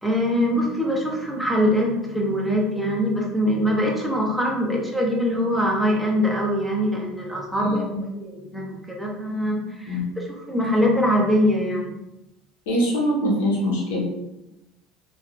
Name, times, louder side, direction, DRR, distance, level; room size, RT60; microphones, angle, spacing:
voice 1, 0.0-7.8 8.2-10.0 10.5-11.9, equal, ahead, -1 dB, 0.7 m, -23 dB
voice 2, 7.6-8.0 9.9-10.0 12.7-14.0, equal, 90° left, -4 dB, 1.0 m, -23 dB
2.8 x 2.4 x 2.4 m, 0.92 s
supercardioid pair, 105°, 0 cm